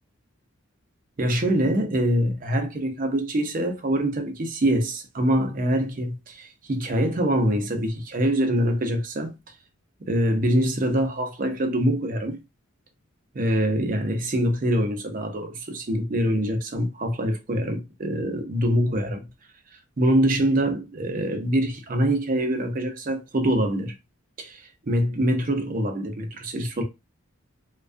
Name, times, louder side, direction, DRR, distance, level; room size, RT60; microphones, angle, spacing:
voice 1, 1.2-9.4 10.0-12.4 13.3-19.3 20.0-23.9 24.4-26.8, equal, 40° right, 0.5 m, -24 dB
2.3 x 2.2 x 2.4 m
head